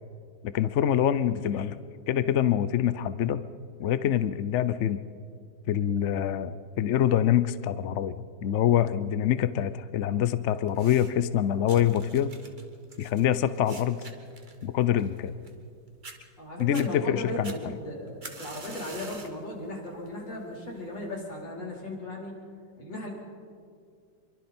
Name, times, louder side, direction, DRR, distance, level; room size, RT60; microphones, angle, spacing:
voice 1, 0.4-1.8 2.1-3.4 3.8-5.0 5.7-12.4 13.0-14.0 14.6-15.3 16.6-17.5, left 10 dB, 60° left, 13 dB, 0.7 m, -25 dB
sound 1, 10.7-11.3 11.7-15.7 16.0-16.2 16.6-16.9 17.4-19.4 19.9-20.2 21.0-21.1, right 3 dB, 30° right, 1.4 m, -45 dB
voice 2, 16.4-22.4 22.8-23.1, left 1 dB, 90° left, -3 dB, 4.9 m, -37 dB
26.0 x 23.0 x 4.4 m, 2.2 s
omnidirectional pair, 1.9 m